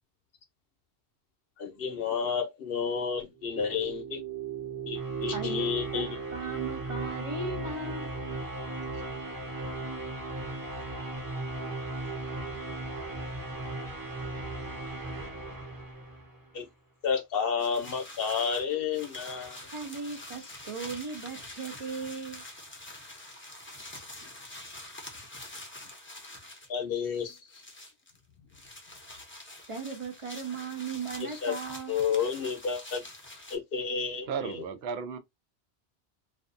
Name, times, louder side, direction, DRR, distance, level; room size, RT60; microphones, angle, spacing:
voice 1, 1.6-4.2 4.9-6.1 16.5-16.7 17.0-19.7 24.2-24.3 26.7-27.6 31.2-31.6 31.9-33.0 33.5-34.6, left 6 dB, 65° left, 0.8 m, -31 dB
sound 1, 3.4-16.5, right 3 dB, 20° right, 0.8 m, -36 dB
voice 2, 5.3-8.1 19.7-22.4 29.7-32.0, right 4 dB, 45° right, 0.4 m, -37 dB
sound 2, 17.6-26.7 27.0-28.2 28.5-33.6, left 1 dB, 15° left, 0.5 m, -46 dB
voice 3, 34.3-35.2, right 6 dB, 70° right, 0.8 m, -34 dB
2.5 x 2.3 x 2.4 m
omnidirectional pair, 1.1 m